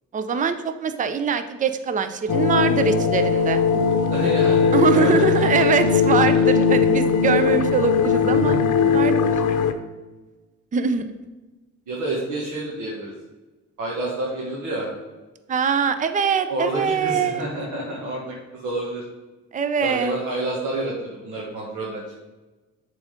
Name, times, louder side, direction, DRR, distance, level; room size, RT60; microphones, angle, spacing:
voice 1, 0.1-3.6 4.7-8.6 8.9-9.3 10.7-11.1 15.5-17.5 19.5-20.2, right 6 dB, 25° right, 10 dB, 0.5 m, -23 dB
sound 1, 2.3-9.7, left 6 dB, 75° left, 0.7 m, -19 dB
voice 2, 4.1-5.2 5.5-5.6 11.9-13.1 13.8-14.9 16.5-19.0 19.8-22.1, right 2 dB, 80° right, -4 dB, 1.4 m, -29 dB
7.0 x 3.8 x 5.1 m, 1.2 s
cardioid pair, 90°, 30 cm